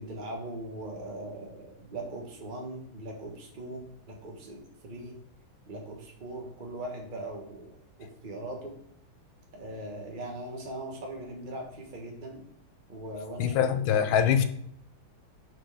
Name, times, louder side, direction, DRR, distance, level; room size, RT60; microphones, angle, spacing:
voice 1, 0.0-5.1 5.7-8.7 9.5-12.4 12.9-14.3, right 1 dB, 25° right, 1 dB, 1.4 m, -40 dB
voice 2, 13.4-14.4, left 8 dB, 75° left, 10 dB, 1.3 m, -23 dB
6.7 x 4.5 x 5.8 m, 0.71 s
omnidirectional pair, 2.3 m